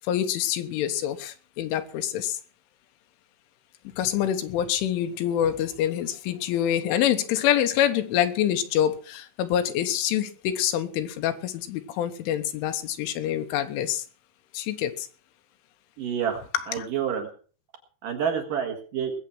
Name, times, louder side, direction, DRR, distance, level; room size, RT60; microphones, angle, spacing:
voice 1, 0.0-2.4 4.0-14.0 14.5-15.1 16.5-16.9, left 10 dB, 85° left, 3.7 m, -26 dB
voice 2, 16.0-16.4 16.7-17.3 18.0-19.1, right 8 dB, 55° right, 2.9 m, -28 dB
20.5 x 8.2 x 6.0 m
omnidirectional pair, 5.4 m